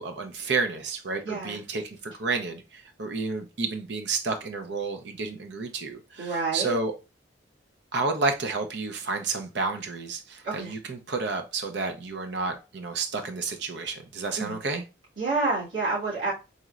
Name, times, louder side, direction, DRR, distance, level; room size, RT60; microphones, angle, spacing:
voice 1, 0.0-6.9 7.9-14.8, right 4 dB, 65° right, 0.6 m, -30 dB
voice 2, 1.2-1.6 6.2-6.8 10.4-10.7 14.4-14.6 15.2-16.3, right 3 dB, 80° right, 2.3 m, -28 dB
4.2 x 3.0 x 2.4 m
head